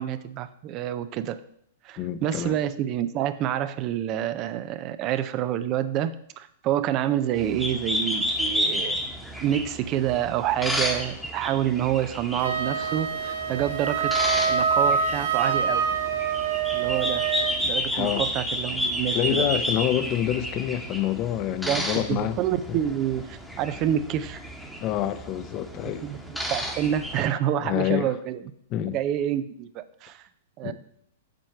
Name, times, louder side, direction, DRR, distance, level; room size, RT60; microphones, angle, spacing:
voice 1, 0.0-1.4 1.8-9.0 9.4-14.1 14.5-15.9 16.7-17.2 17.6-19.4 21.5-21.8 22.1-24.4 26.0-28.4 28.9-30.3 30.6-30.7, right 11 dB, 40° right, 0.5 m, -28 dB
voice 2, 2.0-2.5 18.0-18.3 19.1-22.4 24.8-26.1 27.6-28.1 28.7-29.0 30.6-30.7, left 12 dB, 40° left, 0.6 m, -27 dB
sound 1, 7.4-27.3, equal, ahead, 1.1 m, -31 dB
Wind instrument woodwind instrument, 12.4-17.6, right 6 dB, 65° right, 0.9 m, -25 dB
7.7 x 4.4 x 4.4 m
hypercardioid pair, 115°, 0 cm